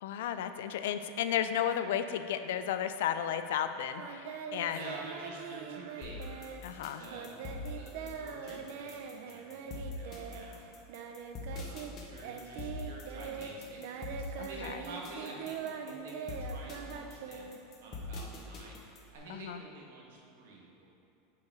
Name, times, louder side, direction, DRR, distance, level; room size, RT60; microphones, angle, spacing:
voice 1, 0.0-4.8 6.6-7.0 14.4-14.7 19.3-19.6, left 9 dB, 75° left, 10 dB, 0.4 m, -33 dB
Singing, 4.0-11.9 12.2-18.0, right 7 dB, 55° right, 0.5 m, -42 dB
voice 2, 4.7-6.2 7.0-7.3 7.7-10.7 11.5-13.8 14.5-17.5 17.8-18.8 19.1-20.9, right 2 dB, 80° right, -3 dB, 1.5 m, -48 dB
sound 1, 6.0-19.2, left 2 dB, 30° left, 0.9 m, -43 dB
7.0 x 4.8 x 4.7 m, 2.7 s
supercardioid pair, 165°, 0 cm